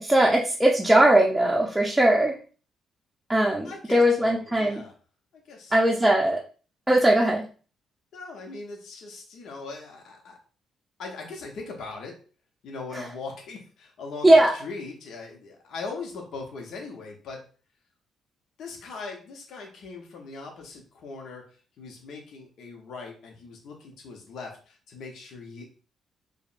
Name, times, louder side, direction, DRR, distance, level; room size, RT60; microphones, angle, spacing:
voice 1, 0.0-2.3 3.3-4.8 5.7-6.4 6.9-7.4 12.9-13.1 14.2-14.5, right 1 dB, 10° right, -2 dB, 0.6 m, -20 dB
voice 2, 3.6-4.9 5.4-5.7 8.1-10.4 11.0-12.2 12.6-17.4 18.6-21.5 21.8-25.7, left 4 dB, 70° left, 1 dB, 0.8 m, -40 dB
4.9 x 2.1 x 2.5 m, 0.39 s
cardioid pair, 90°, 0 cm